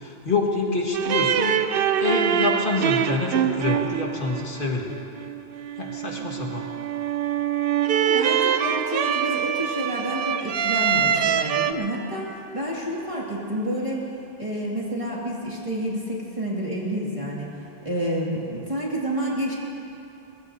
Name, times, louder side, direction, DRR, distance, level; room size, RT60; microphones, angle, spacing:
voice 1, 0.0-1.7 2.0-5.0 5.8-6.7, left 3 dB, 55° left, -1 dB, 2.0 m, -26 dB
sound 1, 0.9-11.7, right 9 dB, 70° right, 0.8 m, -24 dB
voice 2, 7.9-14.1 14.4-17.5 17.8-19.5, right 1 dB, 35° right, -5 dB, 2.3 m, -29 dB
23.0 x 21.0 x 2.8 m, 2.7 s
omnidirectional pair, 1.0 m